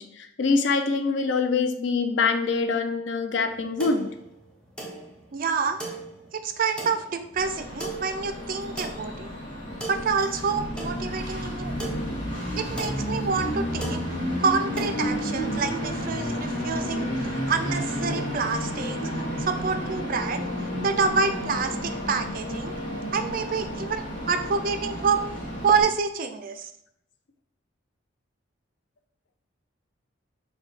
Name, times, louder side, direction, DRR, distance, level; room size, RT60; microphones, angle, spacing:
voice 1, 0.0-4.1, left 4 dB, 60° left, 7 dB, 0.4 m, -24 dB
sound 1, 3.5-15.0, right 2 dB, 5° left, 0.6 m, -40 dB
voice 2, 5.3-5.8 6.3-9.3 9.9-12.0 12.6-14.0 14.4-20.4 20.8-22.7 23.1-25.2 25.6-26.7, right 5 dB, 45° right, 8 dB, 0.3 m, -27 dB
Train, 7.4-25.8, equal, 45° left, 1.7 m, -31 dB
4.7 x 2.2 x 4.0 m, 0.75 s
head